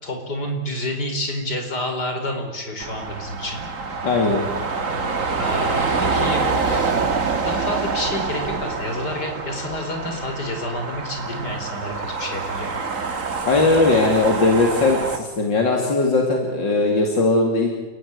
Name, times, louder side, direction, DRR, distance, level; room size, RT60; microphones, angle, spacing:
voice 1, 0.0-3.7 5.4-7.0 7.4-12.7, left 1 dB, 60° left, 4 dB, 5.3 m, -29 dB
sound 1, 2.8-15.2, right 4 dB, 45° right, 2.2 m, -26 dB
voice 2, 4.0-4.5 13.5-17.7, left 3 dB, 85° left, 1 dB, 3.5 m, -19 dB
29.5 x 15.5 x 9.8 m, 1.2 s
omnidirectional pair, 1.9 m